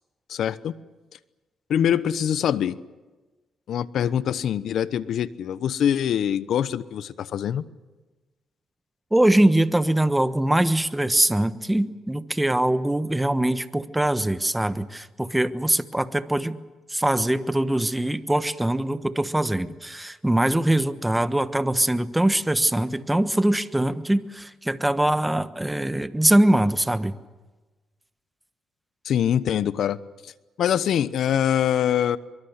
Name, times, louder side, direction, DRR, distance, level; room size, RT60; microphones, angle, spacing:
voice 1, 0.3-0.7 1.7-2.8 3.7-7.6 29.0-30.0 30.2-30.3 30.6-32.2, left 9 dB, 70° left, 16 dB, 1.0 m, -24 dB
voice 2, 9.1-16.6 16.9-27.2, right 1 dB, 10° right, 12 dB, 1.2 m, -22 dB
23.5 x 23.5 x 8.1 m, 1.2 s
cardioid pair, 90°, 0 cm